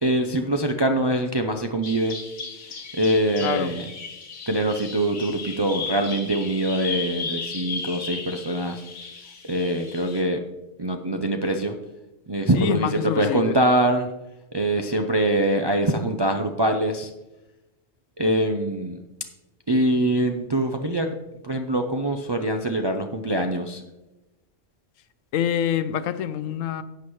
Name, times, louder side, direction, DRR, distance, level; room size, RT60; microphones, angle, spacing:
voice 1, 0.0-2.2 2.5-2.6 2.9-3.9 4.5-8.8 9.4-10.4 10.8-11.7 12.3-14.1 14.5-17.1 18.2-19.0 19.7-21.1 21.4-23.8, right 1 dB, 40° right, 0.3 m, -23 dB
Bird vocalization bird call bird song, 1.8-10.2, left 4 dB, 65° left, 1.4 m, -35 dB
voice 2, 12.5-13.6 25.3-26.8, left 9 dB, 85° left, 1.0 m, -25 dB
11.5 x 8.2 x 3.1 m
omnidirectional pair, 1.3 m